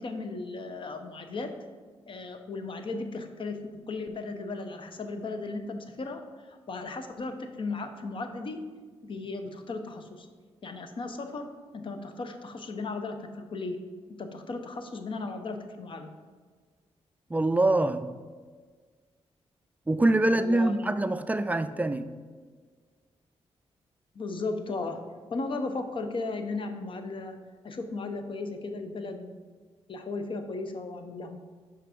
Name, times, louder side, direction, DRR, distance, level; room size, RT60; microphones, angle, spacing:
voice 1, 0.0-1.5 2.1-8.7 9.0-10.3 10.6-11.5 11.7-13.8 14.1-16.1 20.3-20.7 24.1-25.0 25.3-27.4 27.6-29.3 29.9-31.4, left 3 dB, 50° left, 0.7 m, -36 dB
voice 2, 17.3-18.1 19.9-22.1, right 2 dB, 15° right, 0.3 m, -24 dB
5.7 x 4.6 x 5.1 m
cardioid pair, 85°, 11 cm